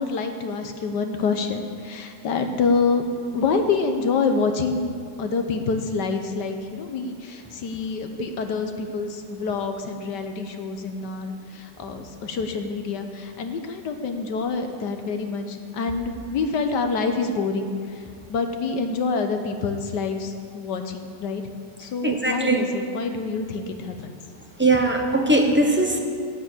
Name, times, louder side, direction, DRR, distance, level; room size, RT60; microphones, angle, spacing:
voice 1, 0.0-3.0 3.3-18.0 18.3-21.4 21.8-24.1, left 4 dB, 75° left, 6 dB, 1.5 m, -27 dB
voice 2, 22.0-22.6 24.6-26.0, right 2 dB, 10° right, 1 dB, 0.8 m, -20 dB
9.7 x 9.3 x 8.1 m, 2.3 s
omnidirectional pair, 1.9 m